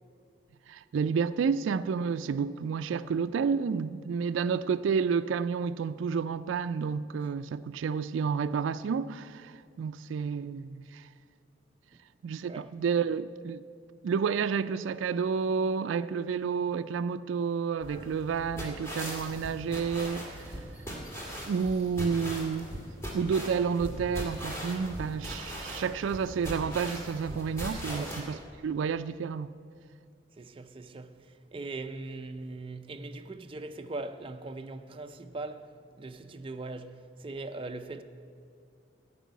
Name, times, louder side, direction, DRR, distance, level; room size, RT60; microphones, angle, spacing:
voice 1, 0.7-11.1 12.2-13.6 14.0-20.6 21.5-22.7 23.1-29.5, right 6 dB, 90° right, 0.3 m, -30 dB
sound 1, 17.8-28.2, equal, 15° left, 2.0 m, -40 dB
voice 2, 27.9-28.5 30.4-38.0, right 2 dB, 30° right, 0.5 m, -40 dB
13.0 x 5.5 x 9.3 m
head